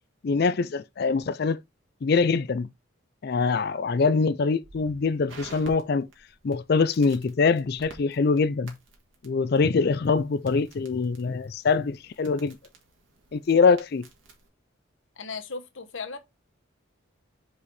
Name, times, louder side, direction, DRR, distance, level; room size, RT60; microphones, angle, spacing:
voice 1, 0.2-1.6 2.0-2.7 3.2-6.1 6.4-8.7 9.2-12.6 13.3-14.0, left 4 dB, 50° left, 0.4 m, -24 dB
Crackle, 4.6-14.5, right 3 dB, 70° right, 1.8 m, -52 dB
voice 2, 15.2-16.2, left 4 dB, 70° left, 1.0 m, -36 dB
5.0 x 4.8 x 4.1 m
head